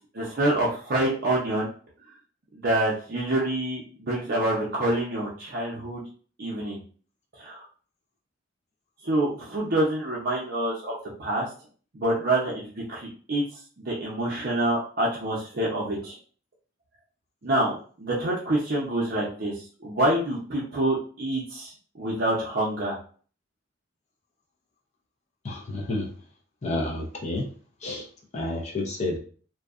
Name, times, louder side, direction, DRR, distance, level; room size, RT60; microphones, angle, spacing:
voice 1, 0.1-1.7 2.5-6.0 6.4-6.8 7.4-7.7 9.0-10.9 11.2-11.5 11.9-16.2 17.4-17.7 18.0-23.0, right 1 dB, 50° right, -5 dB, 0.5 m, -27 dB
voice 2, 25.4-26.1 26.6-27.5 27.8-28.1 28.3-29.2, left 2 dB, 35° left, 0 dB, 0.5 m, -30 dB
2.6 x 2.2 x 2.4 m, 0.42 s
head